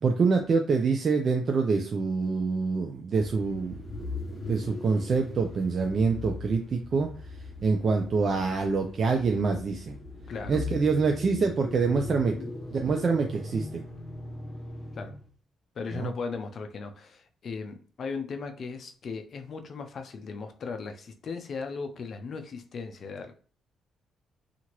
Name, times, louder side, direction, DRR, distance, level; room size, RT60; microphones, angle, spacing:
voice 1, 0.0-3.7 4.5-7.1 7.6-10.0 10.5-12.4 12.7-13.8 15.9-16.1, right 4 dB, 45° right, 0.4 m, -26 dB
sound 1, 3.1-15.3, left 2 dB, 25° left, 0.9 m, -40 dB
voice 2, 10.3-10.6 12.3-12.5 15.0-15.1 15.8-23.3, left 4 dB, 55° left, 0.5 m, -37 dB
2.8 x 2.5 x 2.9 m
cardioid pair, 90°, 0 cm